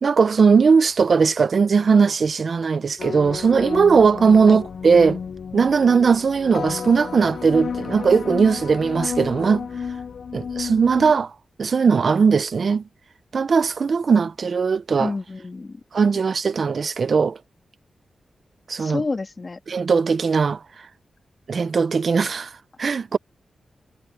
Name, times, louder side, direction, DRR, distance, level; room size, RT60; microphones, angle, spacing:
voice 1, 0.0-5.2 5.5-9.7 10.3-11.3 11.6-12.8 13.3-15.1 15.9-17.4 18.7-19.0 19.7-20.6 21.5-23.2, right 5 dB, 65° right, 0.9 m, -19 dB
sound 1, 3.0-11.1, left 6 dB, 70° left, 0.7 m, -32 dB
voice 2, 15.0-15.8 18.8-19.6, left 3 dB, 45° left, 2.5 m, -28 dB
cardioid pair, 50°, 0 cm